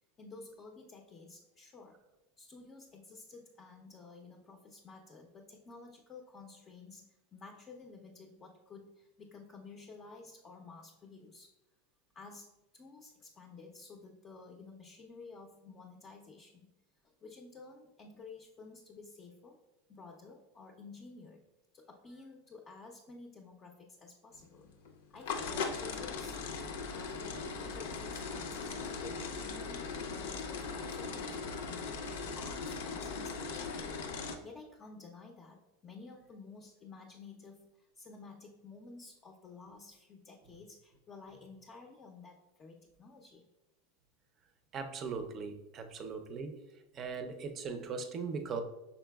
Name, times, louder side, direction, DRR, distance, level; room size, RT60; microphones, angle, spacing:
voice 1, 0.2-2.0 2.4-11.5 12.1-16.7 17.2-19.6 19.9-21.4 21.7-24.7 25.1-26.4 26.9-43.4, left 4 dB, 25° left, 1 dB, 0.5 m, -52 dB
sound 1, 24.4-34.4, left 4 dB, 75° left, 0.5 m, -39 dB
voice 2, 44.7-46.5 46.9-48.6, right 5 dB, 35° right, 7 dB, 0.5 m, -39 dB
5.6 x 3.9 x 2.3 m, 0.99 s
supercardioid pair, 120°, 0 cm